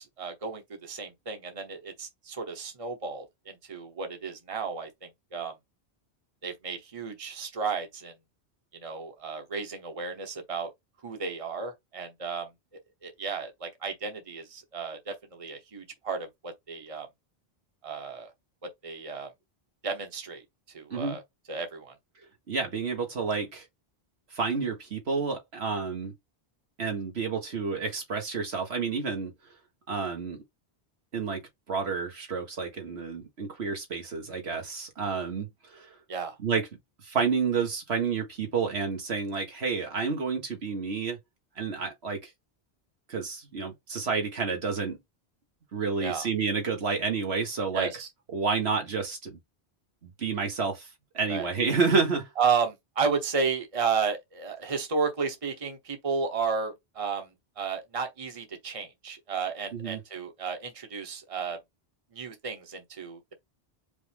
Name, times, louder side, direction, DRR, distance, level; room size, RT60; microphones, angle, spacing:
voice 1, 0.0-5.5 6.4-8.1 8.7-10.7 11.0-12.5 13.0-17.1 17.8-18.3 18.8-19.3 19.8-20.4 20.7-21.2 21.5-21.9 36.1-36.4 46.0-46.3 47.7-48.1 51.3-51.8 52.4-61.6 62.1-63.3, right 5 dB, 35° right, 1.2 m, -33 dB
voice 2, 22.5-23.7 24.3-26.1 26.8-29.3 29.9-30.4 31.1-36.0 36.4-36.7 37.0-41.2 41.5-42.3 43.1-45.0 45.7-47.9 48.3-49.4 50.0-50.9 51.1-52.3 59.7-60.0, right 5 dB, 80° right, 1.7 m, -30 dB
5.1 x 2.3 x 3.5 m
omnidirectional pair, 1.1 m